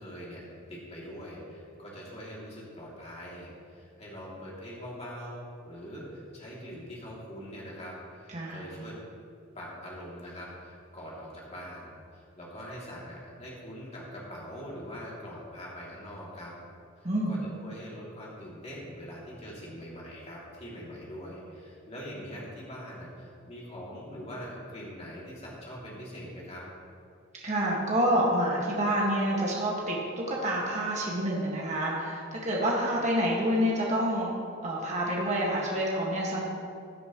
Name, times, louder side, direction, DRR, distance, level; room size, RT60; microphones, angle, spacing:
voice 1, 0.0-9.0 9.5-16.5 17.0-26.7, equal, 30° left, -5 dB, 2.9 m, -43 dB
voice 2, 17.0-17.4 27.4-34.3 34.6-36.4, equal, 35° right, -4 dB, 1.9 m, -28 dB
17.0 x 9.7 x 3.2 m, 2.5 s
head